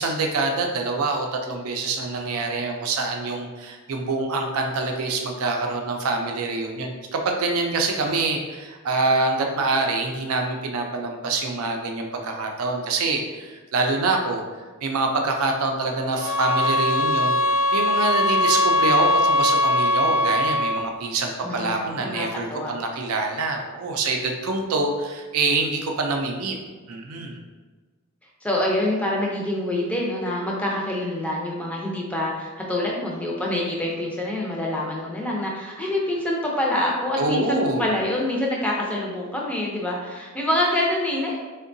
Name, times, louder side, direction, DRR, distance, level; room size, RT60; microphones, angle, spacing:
voice 1, 0.0-14.4 14.8-26.5 26.9-27.4 37.2-37.9, right 3 dB, 85° right, 2 dB, 0.5 m, -25 dB
sound 1, 16.2-21.0, left 1 dB, 65° left, 0.3 m, -21 dB
voice 2, 21.4-22.7 28.4-41.4, left 1 dB, 5° left, -3 dB, 0.5 m, -26 dB
3.6 x 2.2 x 2.6 m, 1.3 s
head